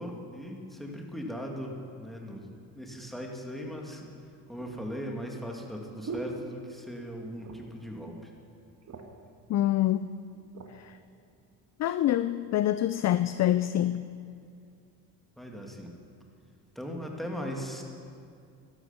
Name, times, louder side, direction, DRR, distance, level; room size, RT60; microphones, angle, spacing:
voice 1, 0.0-2.4 2.7-4.0 4.5-8.3 15.4-15.9 16.8-17.8, equal, ahead, 0 dB, 2.4 m, -38 dB
sound 1, 3.0-3.1 4.0-7.1 7.4-7.9 8.2-8.3 8.6-9.3 10.0-10.8 11.4-11.6, right 3 dB, 35° right, 1.7 m, -44 dB
voice 2, 9.5-10.1 10.8-10.9 11.8-14.1, left 13 dB, 40° left, 13 dB, 0.4 m, -26 dB
13.0 x 11.5 x 5.9 m, 2.4 s
supercardioid pair, 70°, 46 cm